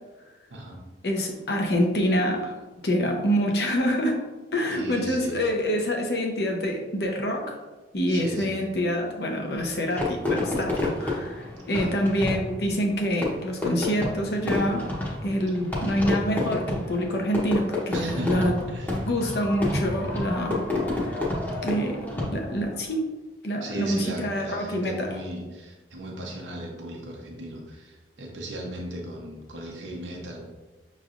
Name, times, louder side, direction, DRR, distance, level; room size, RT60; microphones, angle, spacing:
voice 1, 0.5-0.8 4.7-5.4 8.1-8.6 11.7-11.9 17.9-19.0 23.6-30.4, right 1 dB, 90° right, -1 dB, 0.8 m, -36 dB
voice 2, 1.0-4.3 4.5-7.6 7.9-14.9 15.2-18.5 19.0-21.2 21.6-23.0 23.4-25.1, equal, 60° left, 1 dB, 0.8 m, -26 dB
Fireworks, 10.0-22.7, left 2 dB, 10° left, 0.9 m, -29 dB
6.5 x 3.2 x 2.5 m, 1.2 s
head